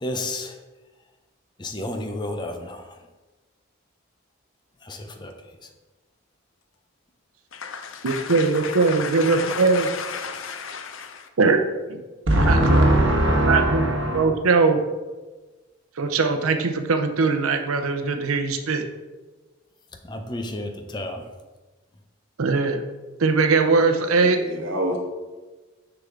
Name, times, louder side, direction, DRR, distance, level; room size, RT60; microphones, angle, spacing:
voice 1, 0.0-0.6 1.6-2.9 4.8-5.3 20.0-21.2, left 1 dB, 20° left, 0.6 m, -31 dB
voice 2, 7.5-11.3, left 6 dB, 70° left, 0.7 m, -33 dB
voice 3, 8.0-9.9 11.4-11.6 11.9-12.0 12.5-13.1 13.4-14.8 16.0-18.8 22.4-22.8 23.2-24.4, right 4 dB, 85° right, 0.7 m, -21 dB
voice 4, 12.3-14.2 24.2-25.0, right 1 dB, 65° right, 1.4 m, -20 dB
6.5 x 6.0 x 3.7 m
head